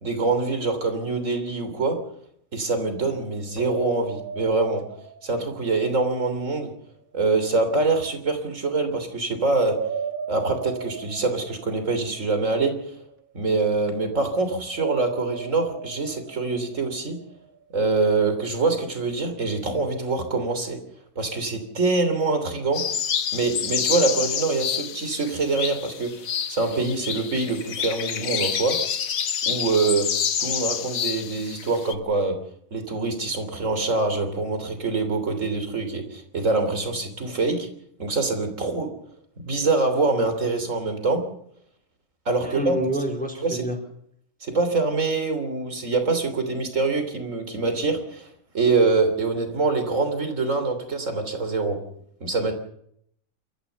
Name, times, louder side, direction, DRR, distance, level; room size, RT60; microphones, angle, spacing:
voice 1, 0.0-2.0 2.5-4.8 5.2-6.7 7.1-9.8 10.3-12.7 13.3-17.2 17.7-20.8 21.2-22.8 23.3-26.1 26.5-28.8 29.5-30.1 30.4-32.4 32.7-37.7 38.0-38.9 39.4-41.2 42.3-42.8 43.4-43.7 44.4-48.3 48.5-51.8 52.2-52.5, right 3 dB, 65° right, 8 dB, 3.6 m, -24 dB
sound 1, 3.6-6.5 9.7-13.0 14.7-17.5, right 7 dB, 80° right, 2.2 m, -37 dB
sound 2, 22.7-31.9, left 8 dB, 85° left, 1.5 m, -28 dB
voice 2, 42.4-43.8, right 1 dB, 5° left, 1 dB, 4.1 m, -28 dB
28.5 x 14.0 x 6.9 m, 0.71 s
omnidirectional pair, 1.4 m